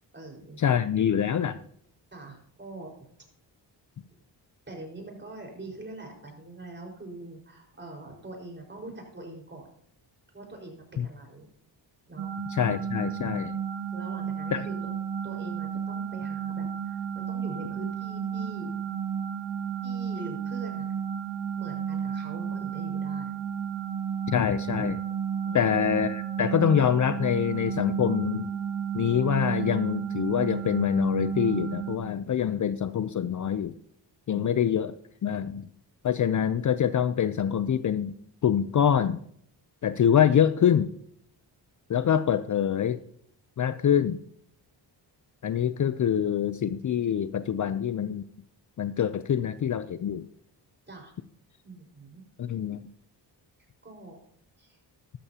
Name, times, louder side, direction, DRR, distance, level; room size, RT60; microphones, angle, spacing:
voice 1, 0.0-0.7 2.1-3.0 4.7-9.7 10.3-11.5 12.1-12.3 13.9-14.8 15.2-17.0 17.3-18.8 19.8-21.0 21.6-23.4 25.4-25.8 34.3-34.5 50.9-51.1 51.6-52.2 53.8-54.2 54.6-54.8, right 2 dB, 25° right, 1 dB, 4.9 m, -43 dB
voice 2, 0.6-1.6 11.0-11.1 12.5-13.6 14.5-14.6 24.3-25.0 25.5-28.5 28.9-33.8 34.3-34.9 35.2-35.7 36.0-38.2 38.4-39.2 39.8-40.9 41.9-43.0 43.6-44.2 45.4-48.2 48.8-50.3 52.4-52.9, left 9 dB, 45° left, 13 dB, 0.6 m, -25 dB
sound 1, 12.2-32.0, right 8 dB, 75° right, 2.3 m, -32 dB
14.0 x 12.5 x 2.9 m, 0.63 s
cardioid pair, 85°, 43 cm